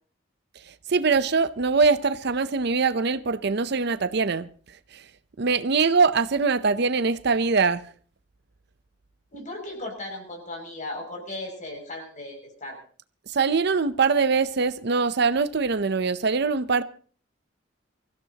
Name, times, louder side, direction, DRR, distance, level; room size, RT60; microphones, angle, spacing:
voice 1, 0.9-4.5 4.9-5.0 5.4-7.8 13.3-16.8, right 4 dB, 60° right, 0.7 m, -22 dB
voice 2, 9.3-12.8, left 2 dB, 45° left, 6.5 m, -36 dB
24.0 x 15.5 x 2.9 m
head